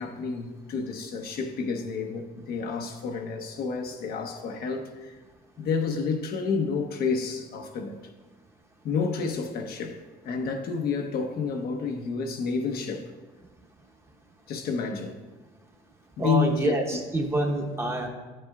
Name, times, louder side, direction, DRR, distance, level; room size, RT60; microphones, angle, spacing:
voice 1, 0.0-5.2 5.6-8.0 8.8-13.1 14.5-15.1 16.2-16.8, left 5 dB, 65° left, 0.8 m, -30 dB
voice 2, 16.2-18.1, right 2 dB, 15° right, 0.9 m, -27 dB
9.1 x 7.5 x 2.3 m
cardioid pair, 110°, 17 cm